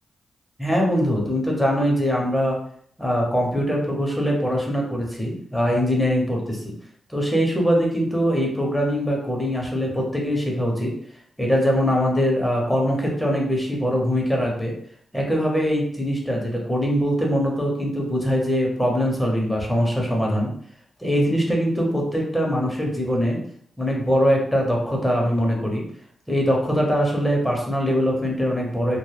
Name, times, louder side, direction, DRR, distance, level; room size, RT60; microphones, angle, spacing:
voice 1, 0.6-2.6 3.0-6.7 7.1-10.9 11.4-14.7 15.1-20.5 21.0-23.4 23.8-25.8 26.3-29.0, equal, 5° left, -1 dB, 0.9 m, -22 dB
2.2 x 2.1 x 3.3 m, 0.63 s
cardioid pair, 55°, 0 cm